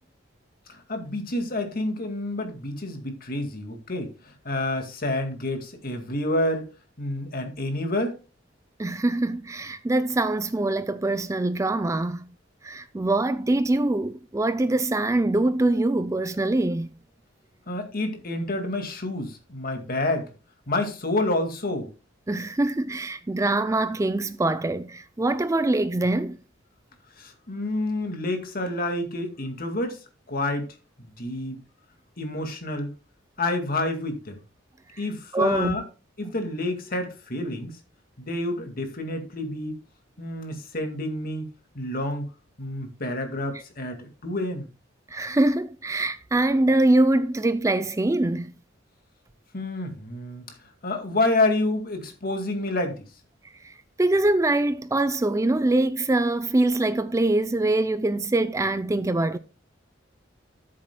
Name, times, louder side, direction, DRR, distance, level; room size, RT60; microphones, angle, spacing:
voice 1, 0.7-4.1 4.5-6.7 7.0-8.1 17.7-20.3 20.7-21.9 27.2-30.0 30.3-30.6 31.0-31.6 32.2-32.9 33.4-34.4 35.0-35.8 36.2-37.8 38.2-39.8 40.2-41.5 41.8-42.2 42.6-44.7 49.5-50.5 50.8-53.0, left 2 dB, 50° left, 2.0 m, -28 dB
voice 2, 8.8-12.3 12.6-16.9 22.3-26.4 35.3-35.8 45.1-48.5 53.6-53.7 54.0-59.4, right 2 dB, 15° right, 0.4 m, -23 dB
13.5 x 7.5 x 2.2 m
head